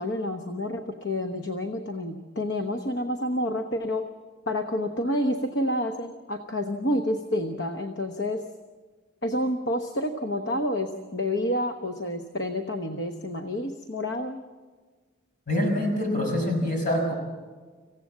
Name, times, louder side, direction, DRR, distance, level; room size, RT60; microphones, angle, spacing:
voice 1, 0.0-4.1 4.5-8.5 9.2-14.4, left 1 dB, 55° left, 6 dB, 1.1 m, -29 dB
voice 2, 15.5-17.1, left 1 dB, 40° left, 1 dB, 5.9 m, -25 dB
26.0 x 16.0 x 7.4 m, 1.4 s
head